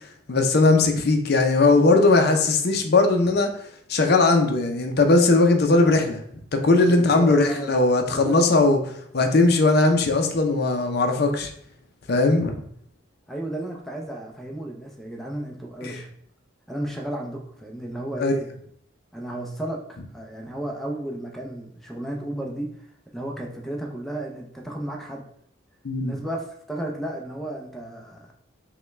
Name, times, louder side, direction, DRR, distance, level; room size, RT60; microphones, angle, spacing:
voice 1, 0.3-3.5 3.9-6.2 6.5-11.5 12.1-12.5 15.8-16.0 18.2-18.3 25.8-26.1, left 3 dB, 55° left, 5 dB, 0.5 m, -19 dB
voice 2, 6.9-7.7 8.1-8.4 13.3-16.1 16.7-18.5 19.1-22.9 23.1-25.2 26.0-28.3, right 1 dB, ahead, 0 dB, 0.5 m, -33 dB
5.5 x 2.2 x 3.2 m, 0.66 s
head